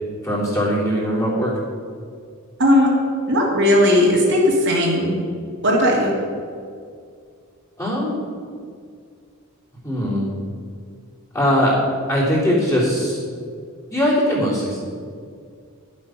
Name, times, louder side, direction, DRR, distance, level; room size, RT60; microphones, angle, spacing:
voice 1, 0.2-1.5 7.8-8.2 9.8-10.2 11.3-11.7 12.1-13.2 13.9-14.8, equal, 15° left, -7 dB, 3.4 m, -20 dB
voice 2, 3.3-5.2 5.6-6.2, left 1 dB, 55° right, -2 dB, 2.1 m, -16 dB
11.0 x 7.8 x 6.0 m, 2.2 s
head